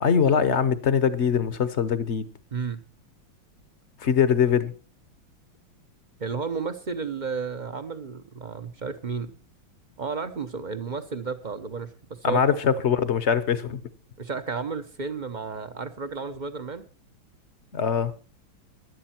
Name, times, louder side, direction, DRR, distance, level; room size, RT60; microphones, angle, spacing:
voice 1, 0.0-2.3 4.0-4.7 12.2-13.8 17.7-18.1, left 7 dB, 50° left, 0.9 m, -22 dB
voice 2, 2.5-2.8 6.2-9.4 10.0-12.4 14.2-16.8, right 5 dB, 45° right, 0.5 m, -32 dB
16.0 x 11.5 x 4.4 m
omnidirectional pair, 2.1 m